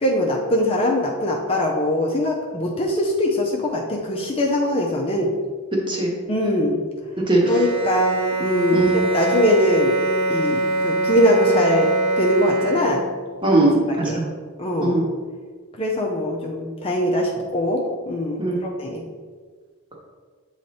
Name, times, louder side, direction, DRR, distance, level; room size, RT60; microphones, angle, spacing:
voice 1, 0.0-5.3 6.3-6.8 7.5-10.0 10.3-11.9 12.2-13.0 14.1-14.2 14.6-15.0 15.8-19.0, left 1 dB, 25° left, -1 dB, 0.6 m, -22 dB
voice 2, 7.2-7.6 8.7-8.9 13.4-14.3 14.8-15.0 18.4-18.6, right 2 dB, 20° right, -2 dB, 1.1 m, -19 dB
Bowed string instrument, 7.4-13.2, right 2 dB, 60° right, 1.4 m, -23 dB
7.8 x 3.2 x 4.2 m, 1.5 s
head